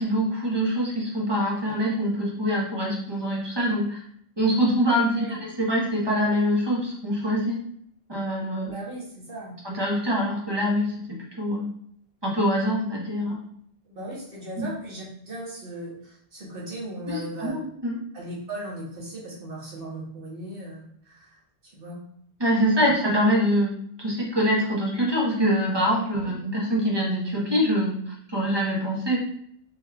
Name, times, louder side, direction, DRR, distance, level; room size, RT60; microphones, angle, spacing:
voice 1, 0.0-4.0 4.4-7.6 8.1-8.7 9.6-11.7 12.2-13.4 14.6-14.7 17.1-18.0 22.4-29.2, equal, 25° right, -4 dB, 0.9 m, -24 dB
voice 2, 8.6-9.6 13.9-17.5 18.1-22.0 22.8-22.9 26.2-26.4, right 1 dB, 60° right, -4 dB, 1.3 m, -37 dB
3.6 x 3.0 x 2.4 m, 0.66 s
omnidirectional pair, 1.1 m